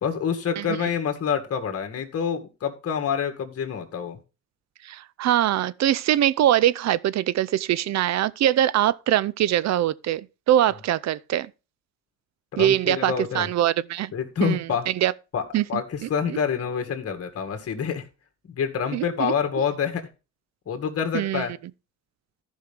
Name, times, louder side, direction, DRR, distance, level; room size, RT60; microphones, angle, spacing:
voice 1, 0.0-4.2 12.5-13.5 14.1-14.9 15.3-15.4 15.7-18.0 18.5-20.1 20.7-21.5, left 7 dB, 50° left, 2.0 m, -27 dB
voice 2, 4.8-11.5 12.6-14.1 14.4-15.1 15.5-16.4 18.9-19.3 21.1-21.4, right 12 dB, 60° right, 0.6 m, -23 dB
14.5 x 5.6 x 3.5 m
cardioid pair, 90°, 30 cm